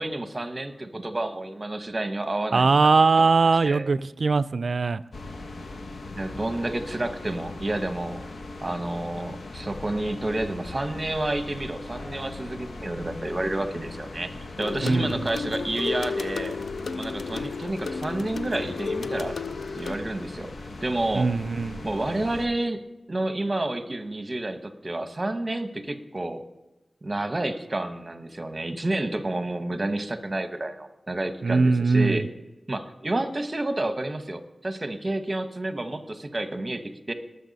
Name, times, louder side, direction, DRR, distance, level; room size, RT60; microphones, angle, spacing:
voice 1, 0.0-3.0 3.6-3.9 6.2-8.2 8.6-14.3 14.6-16.6 16.9-19.4 19.8-20.5 20.8-21.3 21.8-22.8 23.1-26.4 27.0-32.2 32.7-37.1, right 2 dB, 35° right, 8 dB, 1.1 m, -30 dB
voice 2, 2.5-5.0 14.8-15.3 21.1-21.9 31.4-32.2, right 4 dB, 70° right, 17 dB, 0.3 m, -21 dB
sound 1, 5.1-22.5, left 2 dB, 70° left, 1.0 m, -39 dB
sound 2, 14.6-20.0, left 4 dB, 90° left, 0.5 m, -32 dB
19.0 x 6.9 x 4.1 m, 1.0 s
cardioid pair, 55°, 0 cm